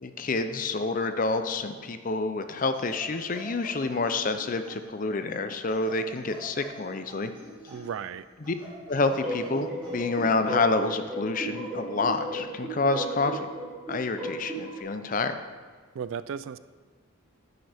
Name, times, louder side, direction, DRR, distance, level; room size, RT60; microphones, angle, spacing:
voice 1, 0.0-7.3 8.4-8.5 8.9-13.5 13.9-15.4, left 3 dB, 40° left, 9 dB, 0.5 m, -28 dB
sound 1, 2.7-5.0 5.7-8.0 8.4-10.6 11.7-12.0, equal, 25° right, 3.2 m, -46 dB
voice 2, 7.7-8.2 15.9-16.6, right 7 dB, 75° right, 15 dB, 0.3 m, -35 dB
sound 2, 9.2-14.8, right 2 dB, ahead, 3.2 m, -35 dB
9.5 x 9.4 x 3.5 m, 1.5 s
head